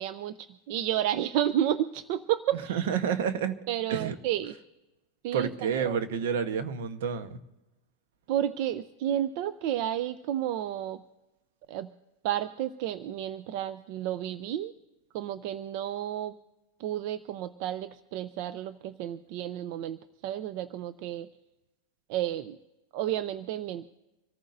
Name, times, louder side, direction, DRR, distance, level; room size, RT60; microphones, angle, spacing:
voice 1, 0.0-2.9 3.7-4.5 5.2-6.0 8.3-11.0 11.7-11.9 12.2-14.7 15.1-16.3 16.8-21.3 22.1-22.6 22.9-23.8, right 11 dB, 55° right, 13 dB, 0.5 m, -31 dB
voice 2, 2.7-3.6 3.9-4.2 5.3-7.4, right 7 dB, 75° right, 10 dB, 1.0 m, -29 dB
26.0 x 14.5 x 2.6 m, 1.0 s
supercardioid pair, 135°, 0 cm